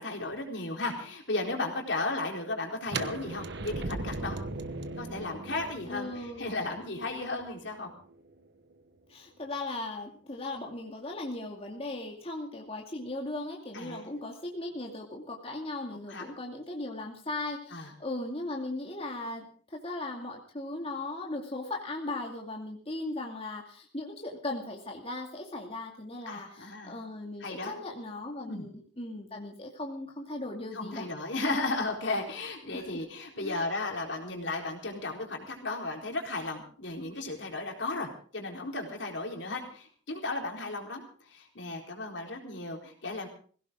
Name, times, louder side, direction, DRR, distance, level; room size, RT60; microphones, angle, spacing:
voice 1, 0.0-4.4 5.0-7.9 13.7-14.1 16.1-16.2 17.7-17.9 26.3-27.0 27.4-27.7 28.5-28.7 30.7-43.3, left 2 dB, 70° left, 2 dB, 4.0 m, -35 dB
sound 1, 2.9-8.7, right 3 dB, 65° right, 1.2 m, -39 dB
voice 2, 5.9-6.7 9.1-31.1 32.7-32.8 33.4-33.6, left 2 dB, 30° left, 0 dB, 2.4 m, -38 dB
20.5 x 17.0 x 3.7 m, 0.43 s
head